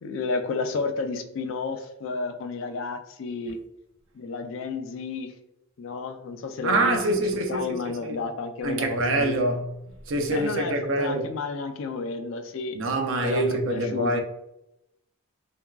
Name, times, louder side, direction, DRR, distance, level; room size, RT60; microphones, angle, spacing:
voice 1, 0.0-3.6 4.1-5.3 5.8-7.0 7.5-9.4 10.3-12.8 13.2-14.2, left 4 dB, 60° left, 0.3 m, -31 dB
voice 2, 6.6-7.8 8.0-8.2 8.6-9.8 10.1-11.3 12.7-14.2, right 2 dB, 60° right, 0.4 m, -25 dB
3.3 x 2.2 x 2.3 m
head